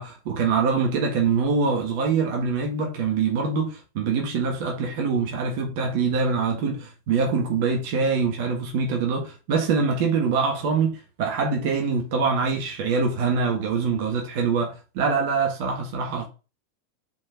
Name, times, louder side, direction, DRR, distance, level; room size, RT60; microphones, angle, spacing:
voice 1, 0.0-16.3, right 5 dB, 50° right, 1.6 m, -24 dB
5.5 x 4.7 x 3.7 m
figure-of-eight pair, 90°, 0 cm